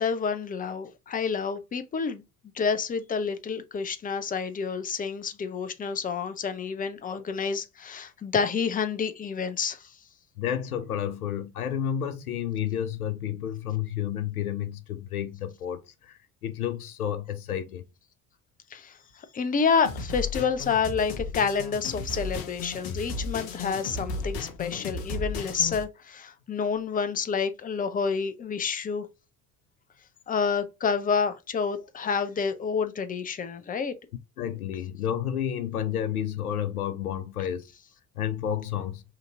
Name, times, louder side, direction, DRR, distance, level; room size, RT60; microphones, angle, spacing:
voice 1, 0.0-2.2 2.5-9.9 18.7-18.9 19.3-29.1 30.3-33.9, left 6 dB, 20° left, 0.6 m, -28 dB
voice 2, 10.4-17.8 34.4-37.7 38.2-39.0, left 10 dB, 80° left, 0.5 m, -31 dB
sound 1, 19.8-25.8, left 4 dB, 55° left, 0.9 m, -34 dB
5.0 x 2.8 x 2.5 m
figure-of-eight pair, 50°, 43 cm